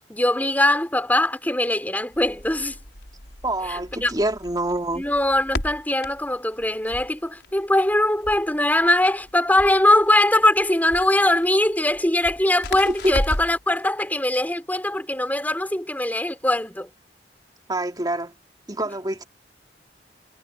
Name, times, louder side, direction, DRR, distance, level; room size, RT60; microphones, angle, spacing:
voice 1, 0.1-2.8 3.6-4.1 4.9-16.9, left 1 dB, 10° left, 5.1 m, -21 dB
Crackle, 2.1-13.6, left 1 dB, 75° left, 4.7 m, -35 dB
voice 2, 3.4-5.0 12.9-13.1 17.7-18.3 18.7-19.2, right 1 dB, 25° right, 3.1 m, -26 dB
head